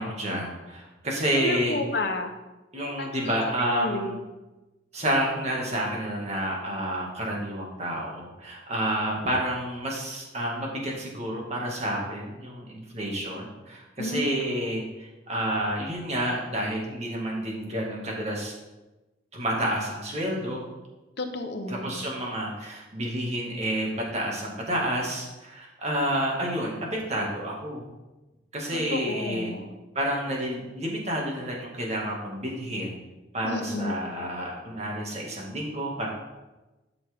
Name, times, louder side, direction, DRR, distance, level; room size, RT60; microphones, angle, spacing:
voice 1, 0.0-1.8 2.7-4.2 4.9-18.5 19.3-20.6 21.7-27.8 28.5-29.5 30.0-33.0 33.3-36.1, right 1 dB, 35° right, -2 dB, 1.9 m, -29 dB
voice 2, 1.4-2.3 3.0-3.4 3.7-4.2 14.0-14.2 21.2-22.0 28.9-29.8 33.4-33.9, left 2 dB, 60° left, 5 dB, 0.9 m, -31 dB
11.5 x 6.1 x 3.5 m, 1.1 s
head